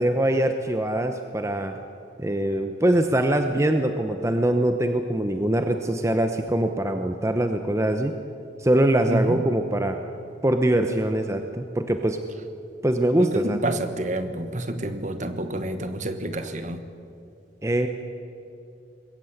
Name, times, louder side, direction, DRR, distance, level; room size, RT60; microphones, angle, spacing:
voice 1, 0.0-1.8 2.2-8.1 8.6-10.0 10.4-12.2 12.8-13.6 17.6-17.9, right 1 dB, 15° right, 6 dB, 0.8 m, -23 dB
voice 2, 9.1-9.4 13.2-16.8, right 1 dB, 40° right, 9 dB, 1.3 m, -28 dB
21.0 x 16.5 x 8.0 m, 2.6 s
head